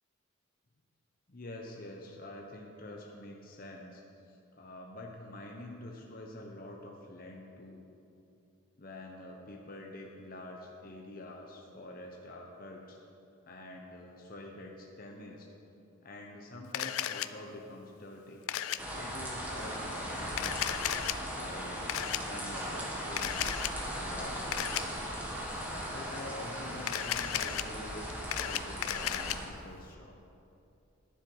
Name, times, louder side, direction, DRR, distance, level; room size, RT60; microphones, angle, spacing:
voice 1, 1.3-7.9 8.8-13.0 13.5-15.5 16.0-18.5 18.9-20.9 21.3-23.6 23.9-25.0 25.5-30.2, left 1 dB, 40° left, 0 dB, 0.9 m, -47 dB
Camera, 16.7-17.3 18.5-18.8 20.3-21.1 21.9-22.2 23.2-23.7 24.5-24.8 26.8-27.6 28.1-29.4, left 11 dB, 85° left, 0.4 m, -34 dB
sound 1, 18.8-29.5, equal, 5° right, 1.4 m, -38 dB
11.0 x 9.9 x 4.7 m, 2.6 s
head